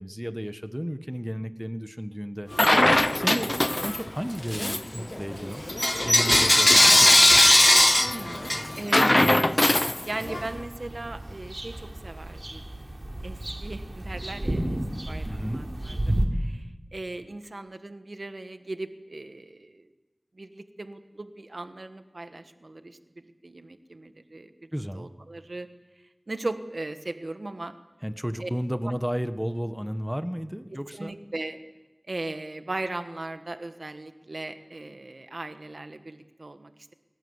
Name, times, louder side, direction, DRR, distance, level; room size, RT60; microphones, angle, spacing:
voice 1, 0.0-2.5 3.1-5.6 6.0-7.4 15.3-15.6 24.7-25.1 28.0-31.1, equal, 5° right, 10 dB, 1.3 m, -33 dB
Bell / Coin (dropping), 2.5-4.1 4.5-10.5, left 1 dB, 30° left, 0.7 m, -20 dB
voice 2, 8.0-9.7 10.0-12.6 13.2-14.8 15.1-16.7 16.9-19.9 20.4-23.0 23.4-24.5 24.9-25.7 26.3-27.7 28.4-28.5 30.9-31.6 32.1-36.9, right 2 dB, 70° right, 8 dB, 1.4 m, -38 dB
sound 1, 10.3-16.3, right 1 dB, 45° right, 3.4 m, -32 dB
25.5 x 18.0 x 8.1 m, 1.1 s
wide cardioid pair, 40°, 0 cm